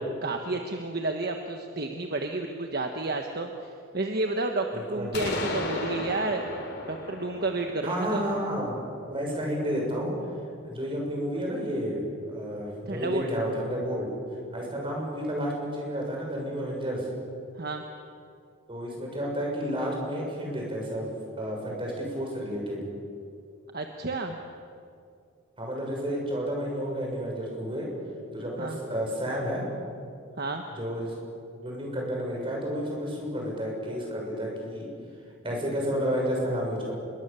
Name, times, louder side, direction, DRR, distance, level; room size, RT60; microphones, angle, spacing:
voice 1, 0.2-3.7 3.9-6.4 6.9-8.2 12.9-13.3 17.6-17.8 23.7-24.4 28.6-28.8 30.4-30.6, right 2 dB, 50° right, 4 dB, 1.4 m, -31 dB
voice 2, 4.7-5.3 7.8-8.8 9.1-10.1 10.6-14.1 14.5-17.1 18.7-21.1 21.4-22.8 25.6-27.9 28.3-29.7 30.8-31.2 31.6-34.9 35.4-36.9, equal, 25° right, -1 dB, 7.0 m, -31 dB
sound 1, 5.1-8.9, left 2 dB, 55° left, 3.4 m, -34 dB
26.0 x 22.5 x 7.1 m, 2.4 s
head